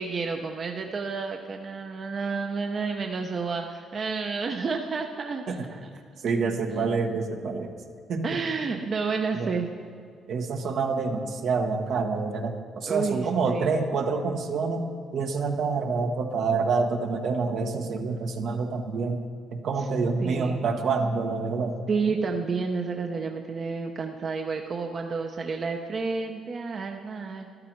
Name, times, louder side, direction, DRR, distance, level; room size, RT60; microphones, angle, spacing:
voice 1, 0.0-5.9 6.7-6.9 8.2-9.7 12.9-13.7 19.8-19.9 20.2-20.6 21.9-27.5, right 4 dB, 45° right, 3 dB, 0.8 m, -30 dB
voice 2, 6.2-7.7 8.1-8.4 9.3-9.5 10.3-14.9 15.1-19.3 19.5-21.8, right 4 dB, 70° right, 3 dB, 1.2 m, -27 dB
13.0 x 12.0 x 4.7 m, 2.2 s
cardioid pair, 90°, 0 cm